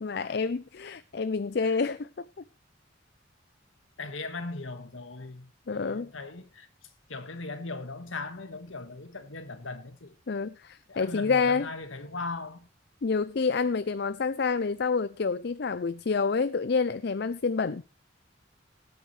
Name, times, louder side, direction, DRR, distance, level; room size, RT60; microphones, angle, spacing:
voice 1, 0.0-2.3 5.7-6.1 10.3-11.7 13.0-17.8, left 4 dB, 55° left, 0.5 m, -28 dB
voice 2, 4.0-6.7 7.1-10.1 10.9-12.7, left 3 dB, 85° left, 1.8 m, -38 dB
18.0 x 8.9 x 3.3 m
head